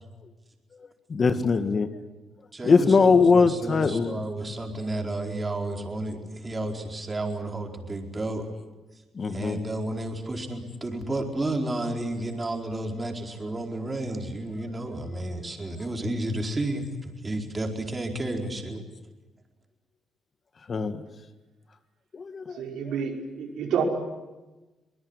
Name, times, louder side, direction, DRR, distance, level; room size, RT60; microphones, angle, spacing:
voice 1, 1.1-2.0 2.6-4.2 9.2-9.6 20.7-21.0 22.1-22.6 22.9-23.0, left 4 dB, 40° left, 9 dB, 1.8 m, -21 dB
voice 2, 2.5-8.5 9.3-18.8, right 1 dB, 25° right, 2 dB, 4.5 m, -32 dB
voice 3, 22.5-23.8, right 7 dB, 80° right, 1 dB, 5.2 m, -29 dB
24.0 x 20.5 x 9.8 m, 1.1 s
cardioid pair, 90°, 0 cm